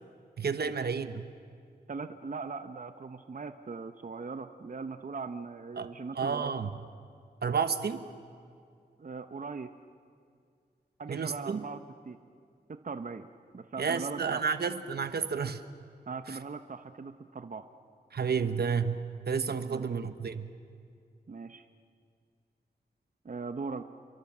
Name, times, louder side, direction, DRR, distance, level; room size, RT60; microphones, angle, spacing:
voice 1, 0.4-1.2 5.8-6.8 7.4-8.1 11.1-11.6 13.8-15.6 16.3-16.4 18.1-20.5, right 6 dB, 75° right, 10 dB, 1.1 m, -31 dB
voice 2, 1.9-6.5 9.0-9.7 11.0-11.8 12.1-12.2 12.7-13.3 13.5-14.5 16.1-17.7 19.6-19.8 21.3-21.7 23.2-23.8, right 4 dB, 50° right, 9 dB, 0.9 m, -39 dB
29.5 x 23.0 x 7.4 m, 2.2 s
wide cardioid pair, 75°, 17 cm